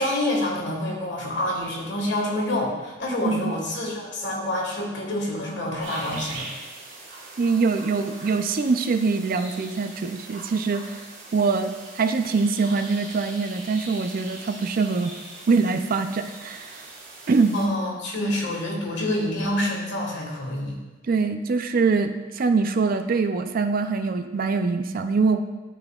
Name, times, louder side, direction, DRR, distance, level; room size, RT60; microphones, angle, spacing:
voice 1, 0.0-6.5 17.5-20.7, left 1 dB, 70° left, -1 dB, 1.5 m, -27 dB
voice 2, 3.2-3.5 7.4-11.0 11.3-15.1 15.5-16.8 17.3-17.5 21.1-25.4, right 4 dB, 50° right, 8 dB, 0.4 m, -23 dB
sound 1, 5.8-17.7, right 2 dB, 75° right, 2.1 m, -41 dB
11.5 x 4.2 x 2.3 m, 1.2 s
head